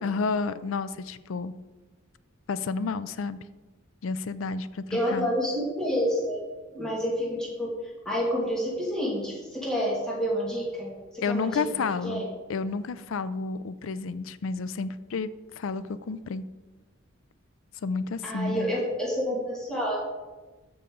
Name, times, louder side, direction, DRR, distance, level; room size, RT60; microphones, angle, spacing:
voice 1, 0.0-1.5 2.5-3.4 4.0-5.3 11.2-15.3 15.6-16.4 17.8-18.7, left 4 dB, 75° left, 15 dB, 0.4 m, -31 dB
voice 2, 4.9-6.4 6.7-7.7 8.1-12.2 18.2-20.0, equal, 5° left, -6 dB, 2.1 m, -29 dB
13.5 x 5.5 x 3.8 m, 1.2 s
head